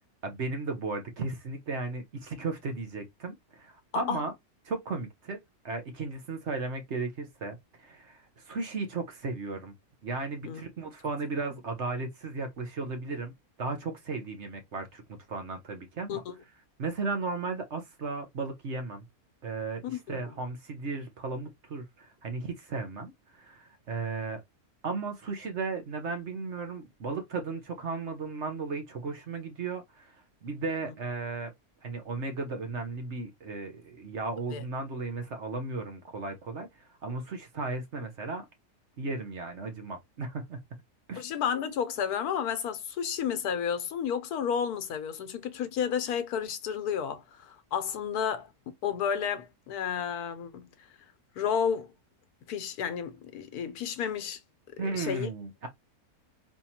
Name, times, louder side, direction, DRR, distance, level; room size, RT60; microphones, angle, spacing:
voice 1, 0.2-4.3 4.7-5.4 5.6-9.7 10.0-16.2 16.8-19.0 19.4-24.4 24.8-30.1 30.4-31.5 31.8-36.7 37.0-38.4 39.0-40.6 41.1-41.2 54.8-55.7, right 3 dB, 50° right, 1.2 m, -35 dB
voice 2, 19.8-20.2 30.8-30.9 34.5-34.6 41.2-48.5 48.8-50.7 51.4-51.9 52.5-54.4 54.8-55.3, left 8 dB, 90° left, 1.3 m, -31 dB
4.5 x 3.5 x 2.8 m
omnidirectional pair, 1.6 m